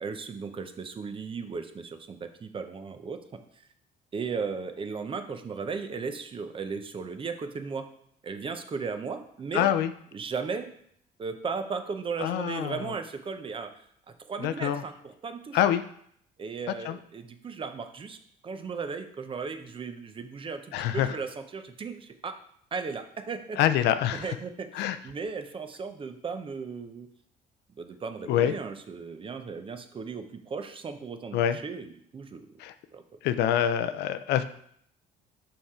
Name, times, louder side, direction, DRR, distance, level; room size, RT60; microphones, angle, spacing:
voice 1, 0.0-3.2 3.6-3.7 4.1-7.9 8.2-9.7 10.1-10.7 11.2-13.7 14.3-15.6 16.4-18.2 18.4-22.3 22.7-23.6 24.1-27.1 27.8-32.5 32.9-33.0, right 5 dB, 30° right, 8 dB, 0.7 m, -36 dB
voice 2, 9.5-9.9 12.2-12.9 14.4-14.8 15.5-15.8 16.8-17.0 20.7-21.2 23.6-24.4 24.7-25.0 28.3-28.5 31.3-31.6 32.6-32.7 33.2-34.4, left 10 dB, 80° left, 11 dB, 0.5 m, -25 dB
5.6 x 4.8 x 4.3 m, 0.66 s
cardioid pair, 110°, 17 cm